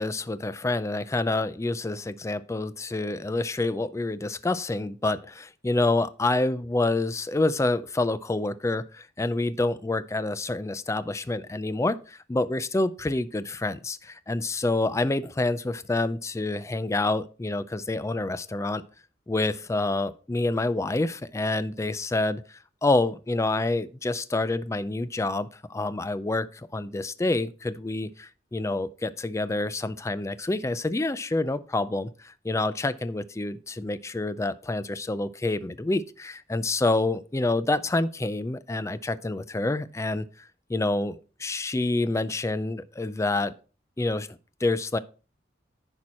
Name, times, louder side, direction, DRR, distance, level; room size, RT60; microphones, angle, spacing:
voice 1, 0.0-18.8 19.3-43.5 44.0-44.3 44.6-45.0, left 2 dB, 15° left, 0.4 m, -27 dB
10.5 x 4.5 x 4.2 m
head